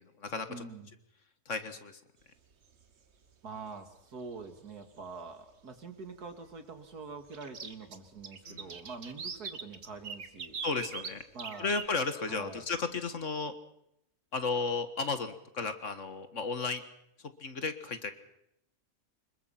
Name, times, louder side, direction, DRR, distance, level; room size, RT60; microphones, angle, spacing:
voice 1, 0.5-0.9 3.4-10.6 11.3-11.7 12.3-12.6, right 4 dB, 80° right, 7 dB, 2.9 m, -45 dB
voice 2, 1.5-2.0 8.5-8.7 10.6-11.2 11.6-13.6 14.3-16.8 17.4-18.1, left 4 dB, 55° left, 10 dB, 1.9 m, -34 dB
sound 1, 2.5-2.8 4.4-4.5 5.0-5.1 7.3-11.8, right 5 dB, 45° right, 1.6 m, -41 dB
26.0 x 22.0 x 5.8 m, 0.78 s
omnidirectional pair, 1.6 m